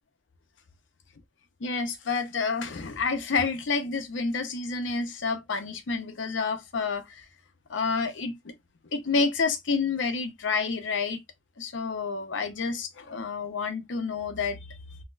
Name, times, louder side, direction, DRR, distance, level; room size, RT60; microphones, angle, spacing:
voice 1, 1.6-7.2 7.7-8.5 8.9-11.2 11.6-14.6, left 4 dB, 85° left, 0.6 m, -29 dB
4.0 x 2.1 x 2.4 m
head